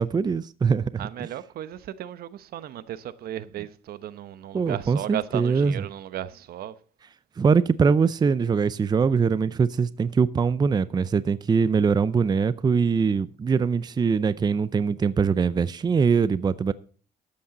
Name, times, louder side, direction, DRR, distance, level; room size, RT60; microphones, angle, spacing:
voice 1, 0.0-1.3 4.5-5.7 7.4-16.7, right 5 dB, 25° right, 0.6 m, -22 dB
voice 2, 1.0-6.8, right 11 dB, 65° right, 0.9 m, -35 dB
13.0 x 8.6 x 4.0 m
cardioid pair, 110°, 17 cm